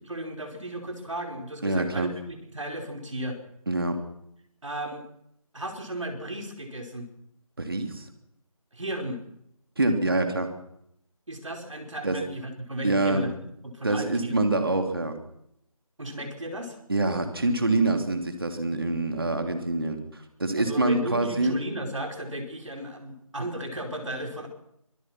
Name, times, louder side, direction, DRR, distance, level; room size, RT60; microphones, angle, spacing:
voice 1, 0.1-3.4 4.6-5.0 5.5-7.1 8.7-9.2 11.3-13.3 13.6-14.4 16.0-16.8 20.6-24.5, right 1 dB, 60° right, 3 dB, 4.8 m, -35 dB
voice 2, 1.6-2.1 3.7-4.0 7.6-8.1 9.8-10.5 12.0-12.2 12.8-13.3 13.8-15.2 16.9-21.6, right 2 dB, 40° right, 6 dB, 2.9 m, -25 dB
25.0 x 18.5 x 6.1 m, 0.75 s
figure-of-eight pair, 180°, 18 cm